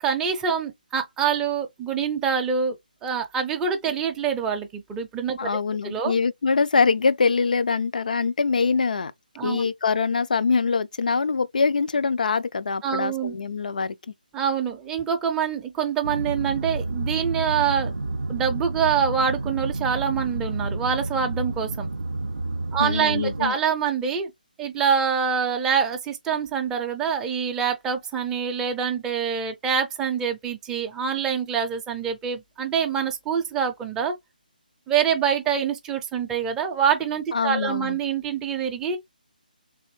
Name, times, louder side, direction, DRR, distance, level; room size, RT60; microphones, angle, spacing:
voice 1, 0.0-2.8 3.0-5.4 5.9-6.1 9.4-9.6 12.8-13.3 14.3-17.9 18.3-21.9 22.7-24.3 24.6-34.1 34.9-39.0, right 7 dB, 10° right, 0.4 m, -25 dB
voice 2, 5.4-9.1 9.4-14.0 22.8-23.6 37.3-38.0, left 5 dB, 60° left, 0.4 m, -23 dB
sound 1, 16.0-23.5, right 2 dB, 70° right, 0.4 m, -30 dB
3.3 x 2.5 x 3.1 m
figure-of-eight pair, 150°, 5 cm